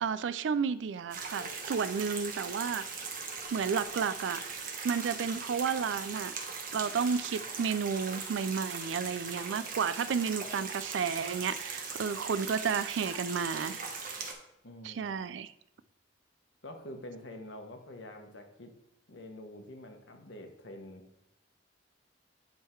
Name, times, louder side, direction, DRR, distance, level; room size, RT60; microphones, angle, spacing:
voice 1, 0.0-2.9 3.5-4.4 4.8-6.3 6.7-13.8 14.8-15.5, right 6 dB, 80° right, 0.4 m, -32 dB
sound 1, 1.1-14.3, right 5 dB, 50° right, 1.2 m, -40 dB
voice 2, 14.6-15.3 16.6-18.7 19.1-21.0, left 1 dB, 75° left, 1.3 m, -46 dB
10.5 x 3.7 x 4.5 m
head